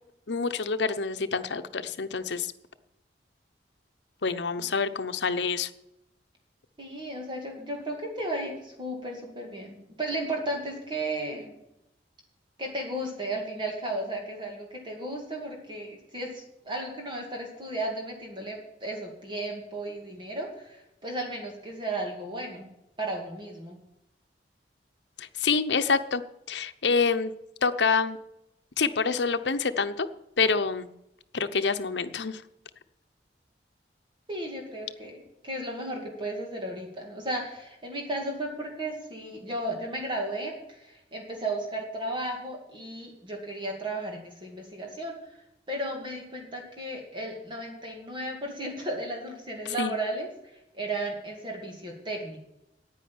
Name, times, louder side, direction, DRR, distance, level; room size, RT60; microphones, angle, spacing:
voice 1, 0.3-2.5 4.2-5.7 25.2-26.2 26.5-27.3 27.6-28.2 28.8-30.1 30.4-30.9 31.3-32.4 49.8-49.9, left 5 dB, 80° left, 10 dB, 0.8 m, -27 dB
voice 2, 6.8-11.6 12.6-22.7 23.0-23.8 34.3-35.1 35.4-45.2 45.7-50.3 50.7-52.4, right 1 dB, 30° right, 1 dB, 2.3 m, -34 dB
9.9 x 9.4 x 8.5 m, 0.86 s
head